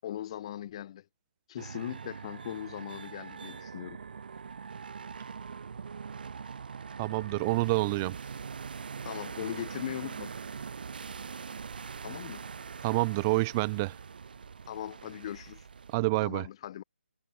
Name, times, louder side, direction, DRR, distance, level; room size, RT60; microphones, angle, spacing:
voice 1, 0.0-1.0 1.5-4.0 9.0-10.3 12.0-12.4 14.7-15.7 16.2-16.8, left 11 dB, 30° left, 5.6 m, -39 dB
sound 1, 1.6-16.0, right 6 dB, 50° right, 7.1 m, -42 dB
voice 2, 7.0-8.2 12.8-13.9 15.9-16.4, right 24 dB, 15° right, 0.4 m, -27 dB
figure-of-eight pair, 165°, 6 cm